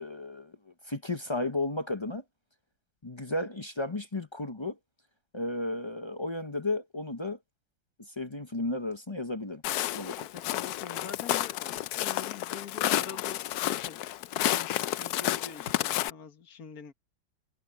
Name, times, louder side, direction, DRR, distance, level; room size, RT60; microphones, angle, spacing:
voice 1, 0.0-2.2 3.0-4.8 5.3-7.4 8.0-9.6 9.9-10.3, left 2 dB, 25° left, 0.6 m, -34 dB
Walk footsteps, 9.6-16.1, left 14 dB, 75° left, 0.9 m, -31 dB
voice 2, 10.3-14.0 14.4-16.9, left 5 dB, 50° left, 2.1 m, -45 dB
omnidirectional pair, 2.0 m